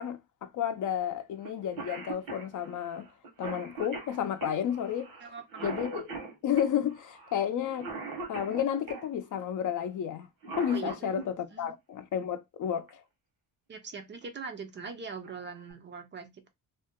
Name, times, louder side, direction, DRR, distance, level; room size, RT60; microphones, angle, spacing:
voice 1, 0.0-3.1 3.4-5.1 5.6-6.1 6.4-7.9 8.3-10.3 10.6-13.0, left 9 dB, 60° left, 0.5 m, -31 dB
Cough, 1.4-1.5 1.8-9.1 10.2-11.3 12.9-13.0 14.0-14.3 14.8-14.9 15.2-15.7, right 3 dB, 75° right, 1.2 m, -41 dB
voice 2, 5.2-5.7 10.7-11.2 11.5-11.7 13.7-16.5, right 5 dB, 30° right, 0.4 m, -42 dB
2.6 x 2.1 x 3.5 m
wide cardioid pair, 175°, 35 cm